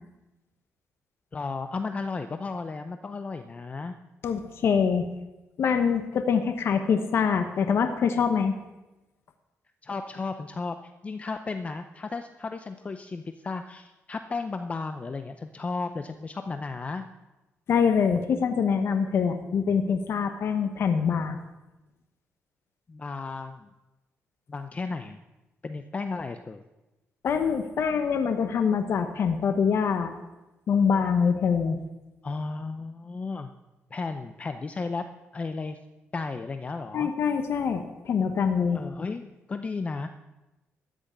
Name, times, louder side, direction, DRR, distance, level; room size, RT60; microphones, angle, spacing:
voice 1, 1.3-3.9 9.8-17.0 22.9-23.7 24.5-25.2 25.6-26.6 32.2-33.5 33.9-35.1 35.3-35.8 36.1-37.1 38.7-40.1, left 4 dB, 30° left, 8 dB, 0.6 m, -34 dB
voice 2, 4.2-5.1 5.6-8.5 17.7-21.4 27.2-30.1 30.7-31.8 36.9-38.8, left 6 dB, 60° left, 7 dB, 1.0 m, -24 dB
13.5 x 6.3 x 8.7 m, 1.0 s
cardioid pair, 115°, 5 cm